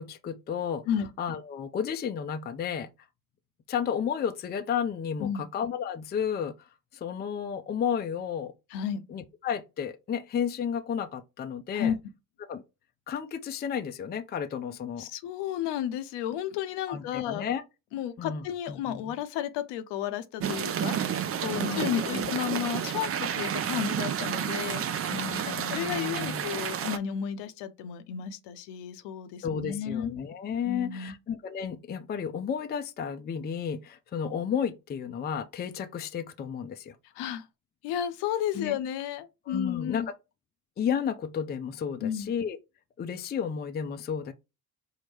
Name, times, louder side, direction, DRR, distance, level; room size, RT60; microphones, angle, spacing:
voice 1, 0.0-0.8 1.2-2.9 3.7-6.7 6.9-8.5 9.1-11.9 12.5-12.6 13.1-15.1 16.9-17.6 18.2-19.1 21.5-22.3 25.1-26.5 29.4-37.0 38.6-38.8 39.5-40.0 40.8-42.6 43.0-44.3, left 7 dB, 25° left, 0.4 m, -32 dB
voice 2, 8.7-9.0 11.7-12.0 15.0-17.5 17.9-25.2 25.5-30.1 30.6-31.1 37.1-37.5 37.8-40.1 42.0-42.3, left 9 dB, 65° left, 0.7 m, -33 dB
sound 1, 20.4-27.0, right 9 dB, 35° right, 0.4 m, -31 dB
4.5 x 2.1 x 3.1 m
hypercardioid pair, 55°, 44 cm